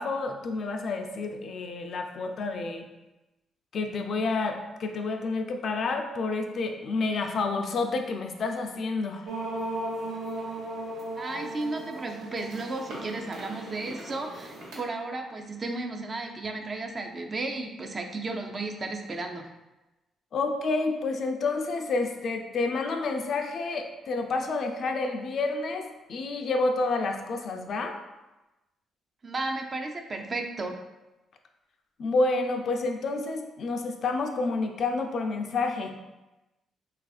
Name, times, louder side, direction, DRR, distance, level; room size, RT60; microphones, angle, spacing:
voice 1, 0.0-2.9 3.7-9.3 20.3-28.0 32.0-36.0, left 3 dB, 60° left, 4 dB, 0.3 m, -29 dB
sound 1, 9.3-14.7, right 1 dB, 80° right, 0.8 m, -36 dB
voice 2, 11.2-19.5 29.2-30.8, right 2 dB, 35° right, 4 dB, 0.3 m, -34 dB
3.3 x 2.4 x 2.3 m, 1.0 s
cardioid pair, 90°, 0 cm